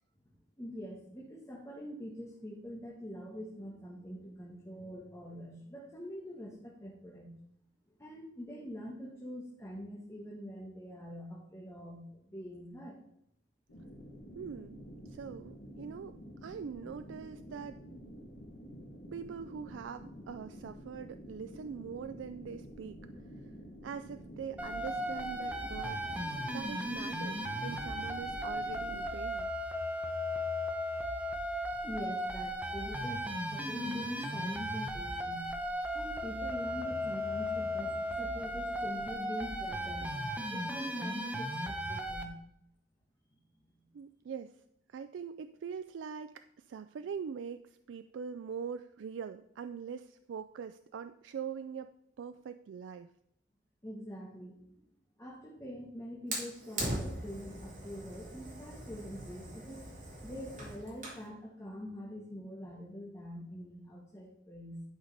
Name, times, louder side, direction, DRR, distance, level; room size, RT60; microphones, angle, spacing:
voice 1, 0.2-7.3 8.0-13.0 31.7-35.5 35.9-42.3 43.6-43.8 53.8-54.8 55.2-59.9 60.2-64.8, equal, 15° left, -2 dB, 1.2 m, -44 dB
sound 1, 13.7-29.0, equal, 75° left, 2.2 m, -49 dB
voice 2, 14.4-14.8 15.1-16.2 16.4-17.8 19.1-23.0 23.8-26.0 26.5-29.5 43.9-44.5 44.9-51.9 52.2-53.1, right 7 dB, 80° right, 10 dB, 0.3 m, -43 dB
sound 2, 24.6-42.2, equal, 10° right, 0.9 m, -36 dB
Fire, 56.3-61.3, right 1 dB, 45° right, 2.7 m, -41 dB
11.0 x 5.1 x 4.0 m, 0.77 s
head